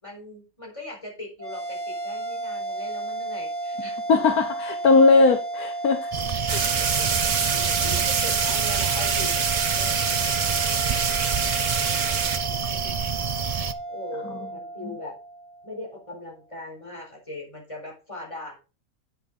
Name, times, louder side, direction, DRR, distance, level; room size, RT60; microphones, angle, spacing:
voice 1, 0.0-4.0 6.7-9.4 9.7-13.3 13.9-15.2 15.6-18.6, left 2 dB, 20° left, -1 dB, 4.4 m, -40 dB
sound 1, 1.4-16.0, right 2 dB, 30° right, 2.0 m, -33 dB
voice 2, 4.1-6.1 6.5-6.6, left 3 dB, 85° left, 5 dB, 1.7 m, -19 dB
sound 2, 6.1-13.7, right 6 dB, 60° right, 0.4 m, -29 dB
sound 3, 6.5-12.4, right 6 dB, 80° right, 1.7 m, -26 dB
9.9 x 8.3 x 3.8 m, 0.33 s
omnidirectional pair, 1.5 m